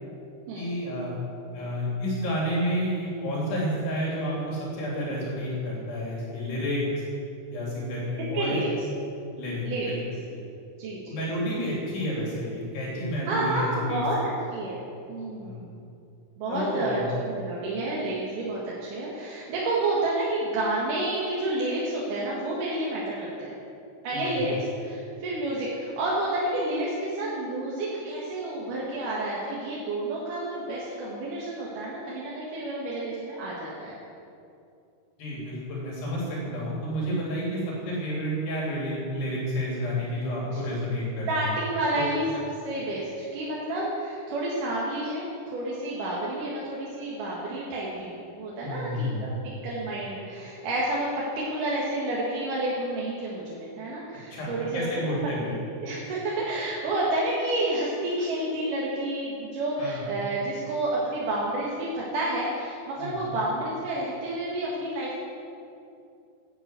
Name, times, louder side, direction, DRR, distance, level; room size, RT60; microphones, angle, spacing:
voice 1, 0.6-1.2 1.5-6.9 7.5-8.6 9.4-10.0 11.1-14.0 15.4-15.7 16.5-17.1 24.1-24.5 35.2-41.5 42.0-42.1 48.6-49.4 54.3-55.5 59.8-60.0 63.0-63.2, equal, 80° left, -5 dB, 5.3 m, -30 dB
voice 2, 8.3-8.7 9.6-9.9 10.8-11.2 13.3-14.8 15.1-15.7 16.4-23.5 24.0-34.0 40.5-40.6 41.3-42.2 42.6-49.4 49.6-65.2, right 1 dB, 60° right, -6 dB, 3.1 m, -30 dB
11.0 x 10.5 x 8.3 m, 2.6 s
omnidirectional pair, 4.6 m